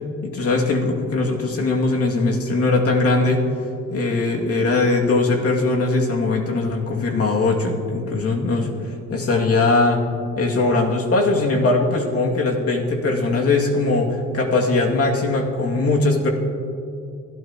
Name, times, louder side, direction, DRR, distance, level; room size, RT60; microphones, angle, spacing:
voice 1, 0.2-3.4 3.9-10.0 10.4-16.3, left 3 dB, 50° left, 0 dB, 2.4 m, -20 dB
25.0 x 12.5 x 3.0 m, 2.5 s
cardioid pair, 90°, 30 cm